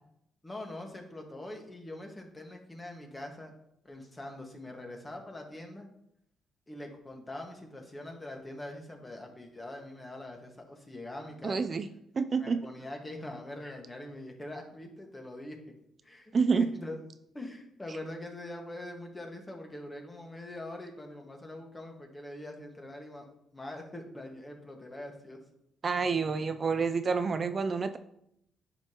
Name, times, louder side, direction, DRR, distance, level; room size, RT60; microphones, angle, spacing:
voice 1, 0.4-3.5 3.8-5.9 6.7-11.6 12.4-15.6 16.0-17.0 17.3-23.3 23.5-25.4, left 1 dB, 20° left, 2 dB, 1.6 m, -43 dB
voice 2, 11.4-11.9 12.1-12.6 16.3-16.7 25.8-28.0, right 5 dB, 40° right, 9 dB, 0.4 m, -28 dB
10.5 x 5.1 x 3.0 m, 0.77 s
cardioid pair, 90°, 0 cm